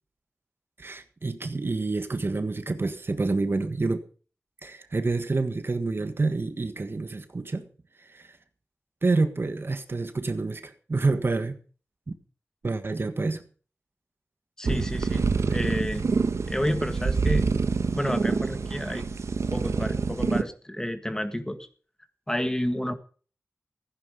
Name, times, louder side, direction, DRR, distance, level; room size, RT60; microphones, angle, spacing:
voice 1, 0.8-4.0 4.6-7.7 8.0-8.4 9.0-11.6 12.6-13.4, right 3 dB, 50° right, 1.5 m, -28 dB
voice 2, 14.6-16.1 16.5-17.5 17.9-19.1 19.5-21.6 22.3-22.9, left 1 dB, 10° left, 1.8 m, -30 dB
sound 1, 14.6-20.4, right 4 dB, 75° right, 1.2 m, -26 dB
15.0 x 10.5 x 5.2 m
cardioid pair, 55°, 5 cm